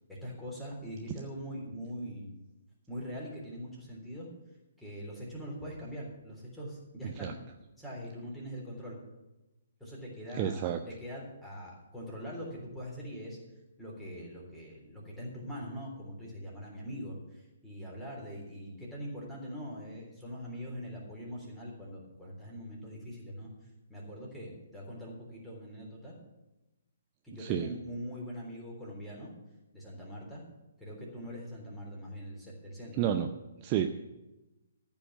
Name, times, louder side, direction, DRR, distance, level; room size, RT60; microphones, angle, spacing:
voice 1, 0.1-2.3 2.9-4.3 4.8-7.4 7.8-9.0 9.8-13.4 13.8-23.5 23.9-26.2 27.2-29.3 29.7-30.4 30.8-33.2, equal, 5° left, -4 dB, 3.6 m, -42 dB
voice 2, 10.3-10.8 27.4-27.7 33.0-33.3 33.6-33.8, right 10 dB, 25° right, 6 dB, 0.6 m, -30 dB
14.0 x 5.4 x 9.3 m, 1.0 s
figure-of-eight pair, 130°, 0 cm